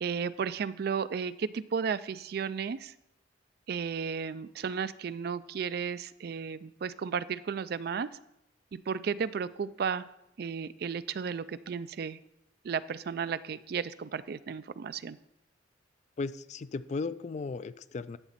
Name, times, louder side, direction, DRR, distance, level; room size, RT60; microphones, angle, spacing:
voice 1, 0.0-2.9 3.7-8.1 8.7-10.1 10.4-12.2 12.6-15.2, right 6 dB, 55° right, 15 dB, 0.4 m, -34 dB
voice 2, 16.2-18.2, left 4 dB, 40° left, 15 dB, 0.3 m, -36 dB
11.5 x 4.1 x 7.4 m, 0.86 s
head